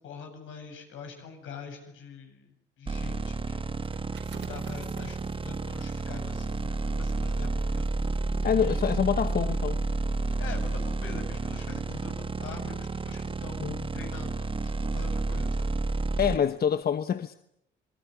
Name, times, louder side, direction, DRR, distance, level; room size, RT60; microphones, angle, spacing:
voice 1, 0.0-3.8 4.3-7.9 8.2-8.8 10.4-15.7, left 5 dB, 85° left, 7.8 m, -44 dB
sound 1, 2.9-16.4, right 3 dB, 25° right, 1.2 m, -30 dB
sound 2, 3.7-9.2 9.6-9.8, right 9 dB, 80° right, 5.0 m, -54 dB
voice 2, 8.4-9.8 13.6-13.9 16.2-17.4, left 8 dB, 50° left, 1.2 m, -26 dB
27.0 x 20.5 x 9.9 m
cardioid pair, 90°, 20 cm